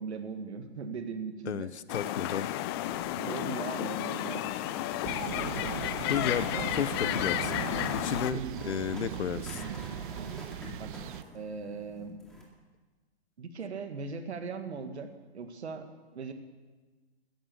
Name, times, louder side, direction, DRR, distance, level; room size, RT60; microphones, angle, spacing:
voice 1, 0.0-1.7 3.1-4.4 6.5-6.7 8.3-8.6 10.1-10.3 10.8-10.9 11.3-12.2 13.4-15.1 15.3-16.3, right 5 dB, 75° right, 8 dB, 1.8 m, -39 dB
voice 2, 1.5-2.5 6.1-7.7 8.0-9.6, left 8 dB, 80° left, 17 dB, 0.8 m, -33 dB
sound 1, 1.9-8.3, left 13 dB, 25° left, 0.4 m, -32 dB
sound 2, 2.6-12.4, left 2 dB, ahead, 2.3 m, -48 dB
sound 3, 5.0-11.2, right 12 dB, 50° right, 0.4 m, -38 dB
14.0 x 11.0 x 7.0 m, 1.3 s
hypercardioid pair, 130°, 33 cm